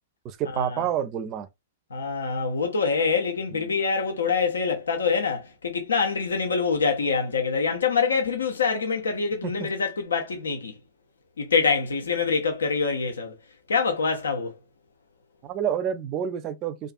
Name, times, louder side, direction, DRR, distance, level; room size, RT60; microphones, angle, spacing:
voice 1, 0.2-1.5 3.5-3.7 9.4-9.7 15.4-16.9, right 9 dB, 35° right, 0.4 m, -29 dB
voice 2, 1.9-10.7 11.4-13.4 13.7-14.5, left 5 dB, 85° left, 0.6 m, -25 dB
2.4 x 2.3 x 2.4 m
hypercardioid pair, 120°, 0 cm